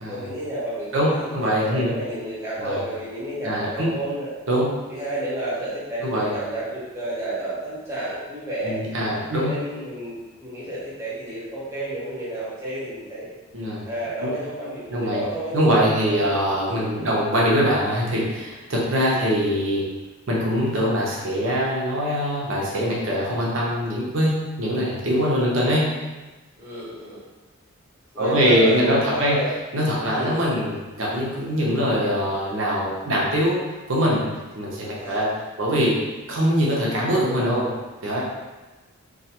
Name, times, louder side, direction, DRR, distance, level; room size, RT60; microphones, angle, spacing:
voice 1, 0.1-4.3 4.9-8.8 9.4-13.3 13.8-15.6 15.9-16.3 16.9-17.2 19.0-19.4 25.2-25.4 26.6-27.2 28.1-29.5 30.1-30.4 34.9-35.3, right 1 dB, 15° right, -10 dB, 0.7 m, -31 dB
voice 2, 0.9-1.9 2.6-2.8 3.4-3.9 4.5-4.7 6.0-6.3 8.6-9.5 13.5-13.8 14.2-14.3 14.9-15.2 15.5-19.8 20.3-25.9 28.2-29.4 29.7-33.6 33.9-34.2 34.5-35.3 35.6-36.0 36.3-37.7 38.0-38.2, equal, 65° right, -5 dB, 0.7 m, -22 dB
2.4 x 2.3 x 2.8 m, 1.2 s
head